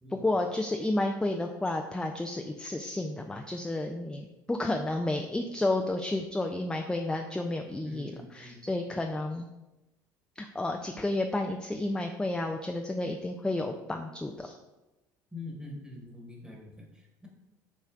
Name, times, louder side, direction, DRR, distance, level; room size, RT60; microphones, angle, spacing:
voice 1, 0.1-9.5 10.4-14.5, left 2 dB, 10° left, 4 dB, 0.3 m, -31 dB
voice 2, 7.8-9.0 15.3-17.3, left 2 dB, 10° right, -1 dB, 1.3 m, -45 dB
5.9 x 3.1 x 2.4 m, 1.0 s
hypercardioid pair, 70°, 10 cm